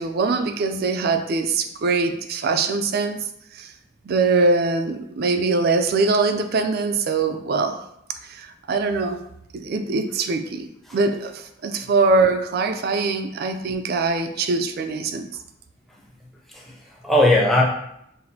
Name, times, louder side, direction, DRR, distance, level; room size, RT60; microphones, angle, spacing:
voice 1, 0.0-3.2 3.5-3.7 4.0-7.8 8.2-9.2 9.5-15.3, right 3 dB, 50° right, 8 dB, 0.4 m, -22 dB
voice 2, 16.5-17.6, left 1 dB, ahead, -3 dB, 0.6 m, -19 dB
5.8 x 2.5 x 2.7 m, 0.78 s
head